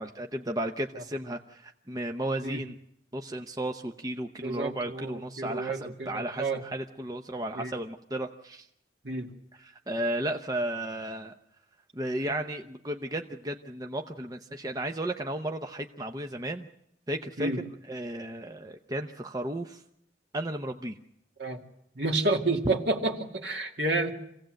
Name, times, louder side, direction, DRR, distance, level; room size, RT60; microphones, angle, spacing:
voice 1, 0.0-2.8 3.1-8.7 9.5-11.3 11.9-16.7 17.1-19.8 20.3-21.0 22.6-22.8, right 1 dB, 20° right, 5 dB, 0.8 m, -34 dB
voice 2, 4.4-6.6 7.5-7.7 9.0-9.3 17.4-17.6 21.4-21.6 22.0-24.1, right 2 dB, 65° right, 3 dB, 2.3 m, -30 dB
26.0 x 16.5 x 7.7 m, 0.78 s
head